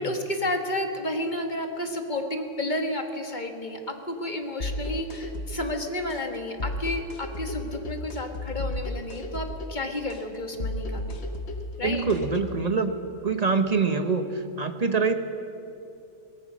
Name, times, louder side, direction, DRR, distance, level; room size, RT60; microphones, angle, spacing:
voice 1, 0.0-11.2 11.8-12.1, left 1 dB, 40° left, 4 dB, 1.7 m, -31 dB
sound 1, 4.6-12.6, left 1 dB, 60° left, 1.6 m, -34 dB
voice 2, 11.8-12.9 13.2-15.1, right 4 dB, 35° right, 8 dB, 1.1 m, -25 dB
22.5 x 19.0 x 6.3 m, 2.8 s
omnidirectional pair, 1.3 m